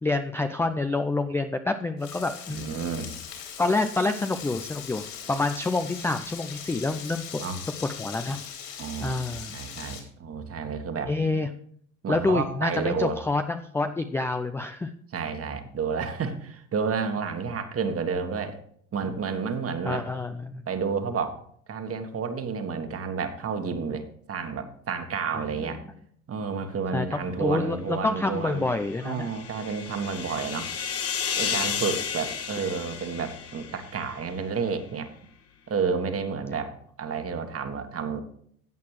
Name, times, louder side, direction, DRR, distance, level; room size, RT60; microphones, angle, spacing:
voice 1, 0.0-2.8 3.6-7.4 7.8-8.4 8.7-8.8 9.0-9.5 11.1-11.5 12.1-14.9 19.8-20.6 25.6-25.7 26.9-29.3, left 3 dB, 5° left, 8 dB, 0.4 m, -27 dB
Frying (food), 2.0-10.0, left 8 dB, 60° left, 4.0 m, -40 dB
voice 2, 2.5-3.1 7.4-7.6 8.8-11.1 12.0-13.2 15.1-18.6 18.9-20.1 20.7-21.4 21.7-25.8 26.3-28.6 29.0-30.7 31.4-35.1 35.7-38.2, right 5 dB, 35° right, 7 dB, 1.6 m, -30 dB
sound 1, 28.6-34.2, left 7 dB, 35° left, 1.5 m, -32 dB
15.0 x 8.4 x 3.2 m, 0.64 s
hypercardioid pair, 70°, 43 cm